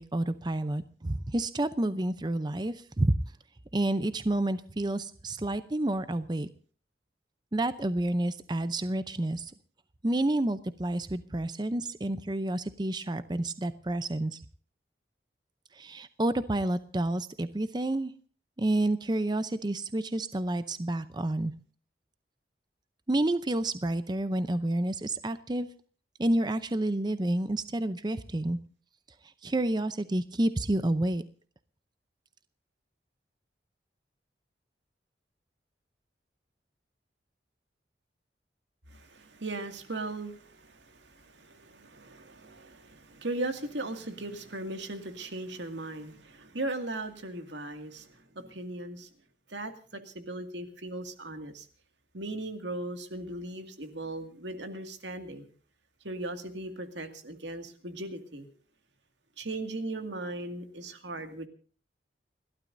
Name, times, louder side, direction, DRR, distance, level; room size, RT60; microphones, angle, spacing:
voice 1, 0.0-3.1 3.7-6.5 7.5-9.5 10.0-14.4 15.7-18.1 18.6-21.5 23.1-25.7 26.2-28.6 29.4-31.2, right 1 dB, 25° right, 12 dB, 0.6 m, -29 dB
voice 2, 38.9-49.1 49.5-51.7 52.1-55.5 56.0-58.5 59.4-61.5, right 2 dB, 85° right, 7 dB, 2.2 m, -38 dB
29.5 x 12.5 x 2.6 m, 0.42 s
head